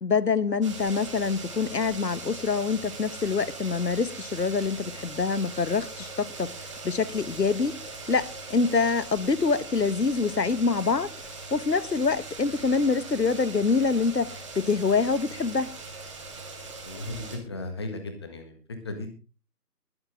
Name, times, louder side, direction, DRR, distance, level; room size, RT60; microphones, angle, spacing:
voice 1, 0.0-6.5 6.8-7.8 8.1-11.1 11.5-15.7, left 4 dB, 85° left, 1.4 m, -25 dB
sound 1, 0.6-17.4, right 3 dB, 20° right, 2.1 m, -40 dB
voice 2, 16.8-18.6 18.8-19.1, left 2 dB, 15° left, 1.6 m, -36 dB
20.5 x 8.4 x 3.6 m
figure-of-eight pair, 165°, 48 cm